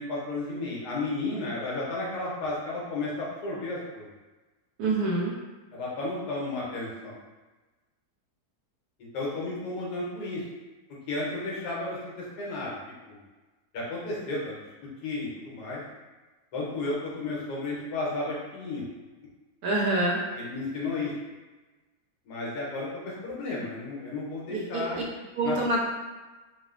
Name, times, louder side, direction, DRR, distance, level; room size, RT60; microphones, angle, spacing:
voice 1, 0.0-4.1 5.7-7.2 9.0-10.4 11.1-12.8 13.1-13.2 13.7-14.6 15.0-15.8 16.5-18.8 20.3-21.1 22.2-22.9 23.2-25.5, left 2 dB, 80° left, -5 dB, 1.3 m, -33 dB
voice 2, 4.8-5.4 19.6-20.2 24.5-24.8 25.4-25.8, right 2 dB, 80° right, -2 dB, 1.1 m, -26 dB
3.2 x 2.1 x 2.3 m, 1.2 s
omnidirectional pair, 1.7 m